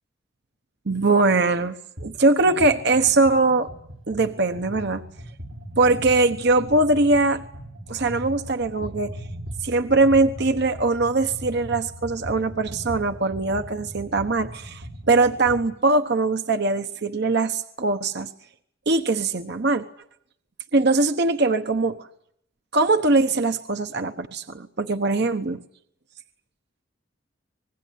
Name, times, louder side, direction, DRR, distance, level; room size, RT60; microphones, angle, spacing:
voice 1, 0.9-1.7 2.0-3.7 4.1-5.0 5.8-7.4 7.9-9.1 9.6-18.3 18.9-19.9 20.7-22.1 22.7-25.6, right 3 dB, 60° right, 8 dB, 1.1 m, -21 dB
sound 1, 2.0-2.1 2.4-15.7, equal, 85° right, 4.9 m, -38 dB
25.5 x 20.0 x 9.9 m, 0.72 s
head